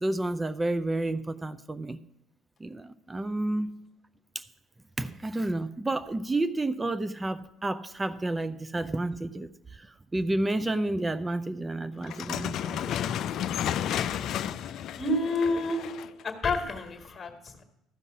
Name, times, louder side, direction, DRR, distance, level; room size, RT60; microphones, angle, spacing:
voice 1, 0.0-2.0 2.6-3.7 5.0-9.5 10.1-12.9, right 2 dB, 20° right, 12 dB, 0.5 m, -30 dB
sound 1, 12.0-16.2, left 10 dB, 60° left, 0.4 m, -32 dB
voice 2, 15.0-15.9 16.2-17.6, left 2 dB, 30° left, 6 dB, 1.6 m, -29 dB
13.0 x 5.4 x 6.0 m, 0.88 s
hypercardioid pair, 55°, 0 cm